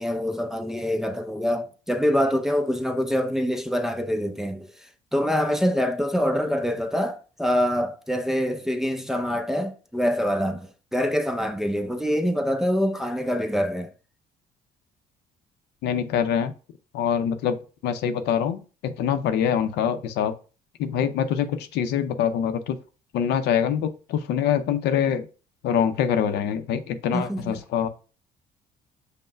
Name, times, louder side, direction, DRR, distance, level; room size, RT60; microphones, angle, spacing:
voice 1, 0.0-4.7 5.1-13.9 27.1-27.6, equal, ahead, 0.5 m, -25 dB
voice 2, 15.8-16.5 16.9-17.6 17.8-20.3 20.8-22.8 23.1-25.3 25.6-27.9, left 8 dB, 80° left, 0.6 m, -24 dB
5.4 x 2.1 x 4.4 m
cardioid pair, 110°, 17 cm